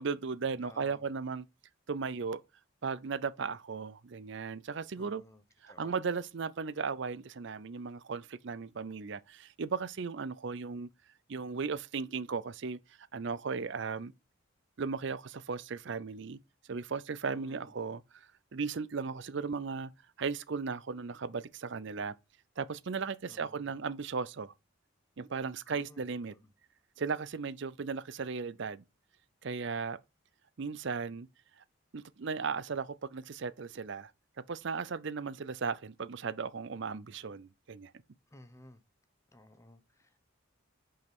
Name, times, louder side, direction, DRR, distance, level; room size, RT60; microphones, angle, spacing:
voice 1, 0.0-1.4 1.9-2.4 2.8-5.2 5.6-10.9 11.3-12.8 13.1-14.1 14.8-16.4 16.7-18.3 18.5-19.9 20.2-22.1 22.6-24.5 25.2-26.3 27.0-28.8 29.4-30.0 30.6-31.3 31.9-34.1 34.5-37.9, right 5 dB, 55° right, 0.5 m, -36 dB
voice 2, 0.6-1.0 4.9-6.0 17.3-17.7 23.3-23.8 25.7-26.5 38.3-38.8 39.3-40.2, left 1 dB, 15° left, 0.9 m, -56 dB
5.5 x 5.3 x 6.0 m
head